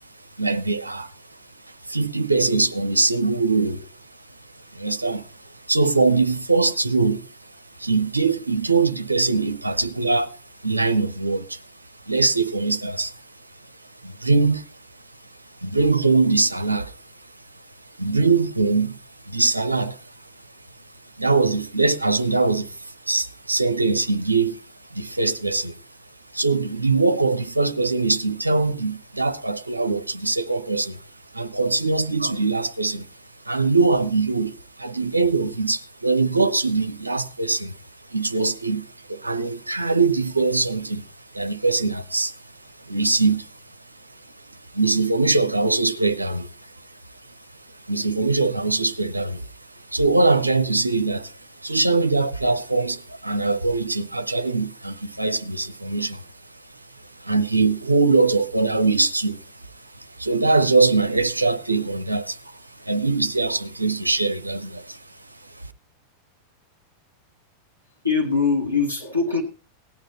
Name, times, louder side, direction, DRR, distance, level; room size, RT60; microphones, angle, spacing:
voice 1, 0.4-1.1 1.9-3.9 4.7-5.3 5.7-7.3 7.8-10.4 10.6-11.6 12.1-13.1 14.0-14.7 15.6-16.9 18.0-19.0 19.2-20.0 21.2-24.6 24.9-25.8 26.3-31.0 31.3-33.1 33.5-37.8 38.1-41.1 41.3-42.3 42.9-43.5 44.5-46.7 47.9-49.5 49.9-56.2 57.2-59.5 60.0-65.0, right 3 dB, 85° right, 0.8 m, -22 dB
voice 2, 68.0-69.4, left 5 dB, 85° left, 1.8 m, -22 dB
17.5 x 9.0 x 4.1 m
figure-of-eight pair, 90°, 0 cm